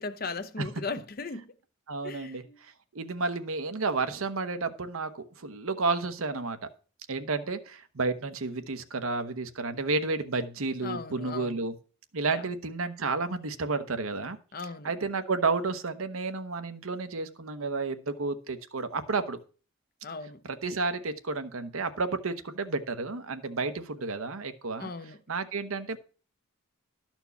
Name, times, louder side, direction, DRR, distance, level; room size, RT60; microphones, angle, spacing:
voice 1, 0.0-1.5 2.0-2.6 10.8-11.6 12.3-12.4 14.5-14.9 20.0-20.4 24.8-25.2, left 4 dB, 45° left, 0.7 m, -37 dB
voice 2, 1.9-6.7 7.1-11.7 12.1-14.4 14.8-19.4 20.4-24.9 25.3-26.0, right 3 dB, 85° right, 1.0 m, -31 dB
12.5 x 4.5 x 6.9 m
head